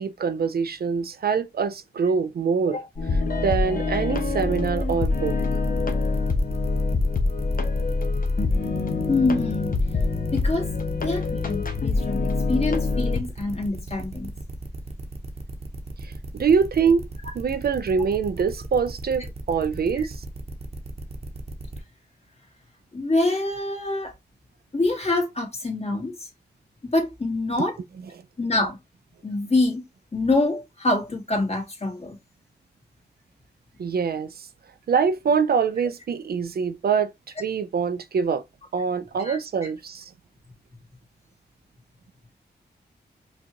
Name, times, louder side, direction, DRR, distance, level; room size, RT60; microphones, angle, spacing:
voice 1, 0.0-2.8 3.4-5.4 16.0-17.1 17.3-20.2 27.6-27.7 28.1-28.2 33.8-34.5 34.9-37.1 37.4-38.4 38.7-40.1, right 6 dB, 60° right, 0.5 m, -24 dB
sound 1, 3.0-13.2, left 3 dB, 55° left, 0.9 m, -25 dB
sound 2, 4.1-21.8, right 2 dB, 35° right, 1.0 m, -37 dB
voice 2, 9.1-9.7 10.3-10.7 11.0-14.3 20.0-20.1 22.9-24.1 24.7-26.1 26.9-27.8 28.4-28.8 29.2-29.8 30.1-32.2 39.2-39.4, left 2 dB, 35° left, 1.9 m, -25 dB
5.1 x 2.5 x 2.8 m
cardioid pair, 60°, 18 cm